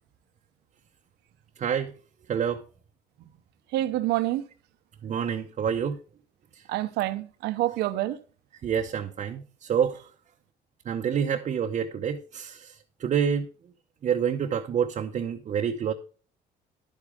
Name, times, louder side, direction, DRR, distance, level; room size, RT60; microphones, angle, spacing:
voice 1, 1.6-1.9 2.3-2.6 5.0-6.0 8.6-10.0 10.9-13.5 14.0-15.9, right 7 dB, 45° right, 0.7 m, -27 dB
voice 2, 3.7-4.4 6.7-8.2, right 15 dB, 80° right, 0.8 m, -27 dB
10.5 x 8.3 x 3.6 m
cardioid pair, 110°, 17 cm